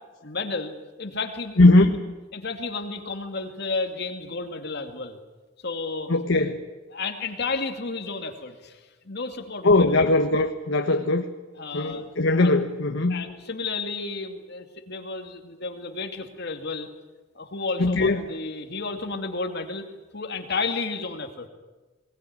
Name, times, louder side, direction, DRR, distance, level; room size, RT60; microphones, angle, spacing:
voice 1, 0.2-1.9 2.3-5.2 5.6-6.1 6.4-6.5 6.9-10.1 11.5-12.0 12.4-12.5 13.1-16.9 17.3-19.8 20.1-21.5, left 3 dB, 60° left, 5 dB, 2.5 m, -32 dB
voice 2, 1.6-2.1 6.1-6.6 9.6-11.2 11.7-13.2 17.8-18.2, left 2 dB, 90° left, 4 dB, 1.3 m, -20 dB
22.0 x 19.5 x 9.6 m, 1.2 s
head